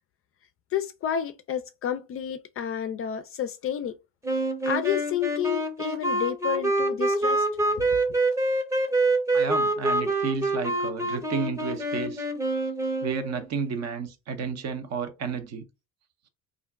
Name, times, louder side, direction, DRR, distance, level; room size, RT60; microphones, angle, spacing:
voice 1, 0.7-3.9 4.7-7.5 7.8-7.9, left 9 dB, 40° left, 0.4 m, -30 dB
sound 1, 4.2-13.4, right 2 dB, 10° right, 0.8 m, -26 dB
voice 2, 9.3-12.3 13.0-15.6, right 5 dB, 45° right, 0.7 m, -32 dB
2.5 x 2.1 x 3.4 m
hypercardioid pair, 75°, 38 cm